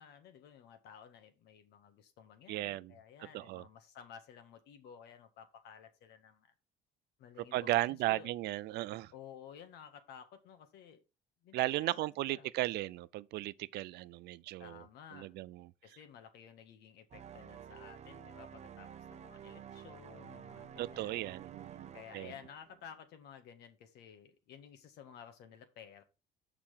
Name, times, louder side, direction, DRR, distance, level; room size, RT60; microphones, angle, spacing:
voice 1, 0.0-6.5 7.2-8.3 9.1-11.0 11.4-12.5 14.6-15.4 15.8-21.3 21.9-26.0, left 8 dB, 80° left, 1.7 m, -54 dB
voice 2, 2.5-2.9 3.3-3.6 7.5-9.1 11.5-14.8 15.1-15.7 20.8-22.3, right 17 dB, 75° right, 0.5 m, -36 dB
sound 1, 17.1-22.9, right 8 dB, 40° right, 0.7 m, -51 dB
6.7 x 5.9 x 5.6 m
cardioid pair, 110°, 17 cm